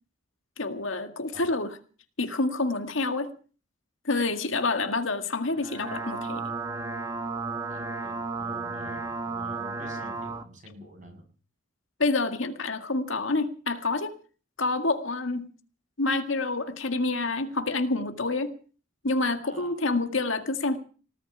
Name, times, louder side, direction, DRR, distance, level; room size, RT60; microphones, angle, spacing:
voice 1, 0.6-1.7 2.2-3.3 4.1-6.4 12.0-14.1 14.6-15.5 16.0-18.5 19.0-20.8, left 3 dB, 75° left, 7 dB, 1.9 m, -28 dB
sound 1, 5.5-10.4, right 3 dB, 20° right, 1.8 m, -33 dB
voice 2, 7.7-11.3 19.4-19.8, equal, 40° right, 4 dB, 7.3 m, -48 dB
19.0 x 7.0 x 9.6 m, 0.40 s
head